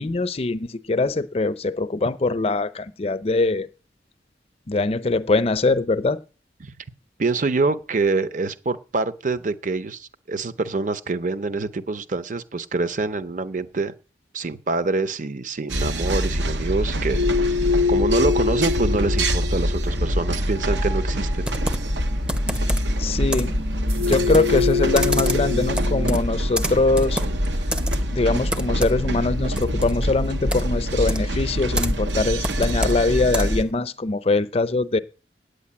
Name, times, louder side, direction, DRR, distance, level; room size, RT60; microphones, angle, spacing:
voice 1, 0.0-3.7 4.7-6.2 23.0-23.6 24.1-27.2 28.1-35.0, left 3 dB, 35° left, 0.5 m, -22 dB
voice 2, 7.2-13.9 14.3-17.5 17.9-21.5, right 3 dB, 45° right, 0.7 m, -25 dB
sound 1, 15.7-33.6, equal, 90° right, 0.9 m, -25 dB
sound 2, 17.1-26.2, left 4 dB, 70° right, 4.2 m, -27 dB
Computer keyboard, 21.4-33.7, right 1 dB, 5° right, 0.5 m, -32 dB
9.0 x 6.5 x 8.6 m
head